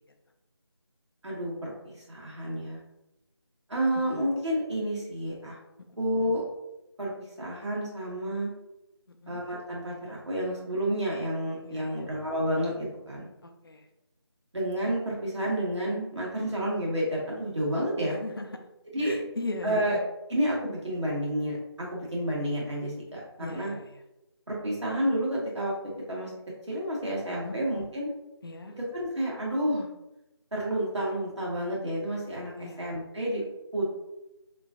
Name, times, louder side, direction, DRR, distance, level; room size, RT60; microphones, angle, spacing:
voice 1, 1.2-2.8 3.7-5.6 6.0-6.4 7.0-7.1 7.4-8.5 9.3-13.3 14.5-18.2 18.9-19.2 19.6-20.0 20.3-23.7 24.5-25.7 26.1-26.3 26.7-28.1 28.9-29.9 30.5-33.4 33.7-34.0, equal, 90° right, -4 dB, 1.4 m, -30 dB
voice 2, 9.1-9.4 11.6-12.0 13.4-13.9 18.0-18.5 19.0-20.0 23.4-24.0 27.4-27.6 28.4-28.8 32.6-32.8, left 2 dB, 55° left, 4 dB, 0.4 m, -38 dB
3.0 x 2.5 x 2.6 m, 0.94 s
figure-of-eight pair, 170°, 14 cm